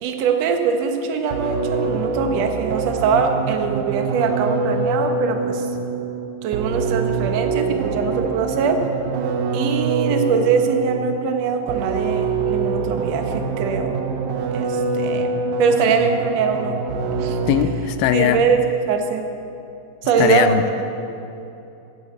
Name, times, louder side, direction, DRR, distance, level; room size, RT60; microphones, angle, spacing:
voice 1, 0.0-5.8 6.4-8.8 9.5-13.9 14.5-16.8 17.2-17.4 18.1-19.2 20.0-20.6, right 6 dB, 70° right, 5 dB, 1.6 m, -22 dB
sound 1, 1.3-17.9, right 4 dB, 85° right, 1.6 m, -25 dB
voice 2, 17.5-18.5 20.2-20.6, left 10 dB, 80° left, 10 dB, 2.2 m, -19 dB
12.5 x 9.4 x 8.0 m, 2.9 s
omnidirectional pair, 4.5 m